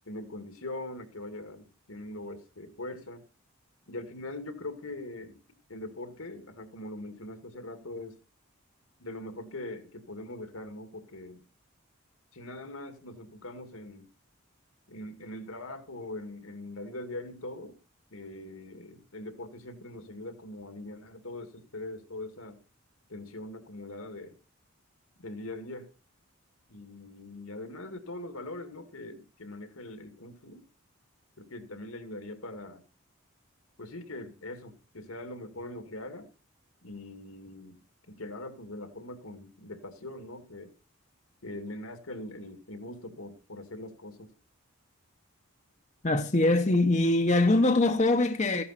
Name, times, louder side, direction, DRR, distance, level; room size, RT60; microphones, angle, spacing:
voice 1, 0.1-3.2 3.9-5.4 5.7-8.2 9.0-11.4 12.3-14.1 14.9-17.8 18.1-22.6 23.1-24.4 25.2-25.9 26.7-30.6 31.4-32.8 33.8-36.3 36.8-37.8 38.1-40.7 41.4-44.3, left 1 dB, 80° left, 2.3 m, -42 dB
voice 2, 46.0-48.6, left 2 dB, 35° left, 0.9 m, -23 dB
15.0 x 11.0 x 4.2 m
head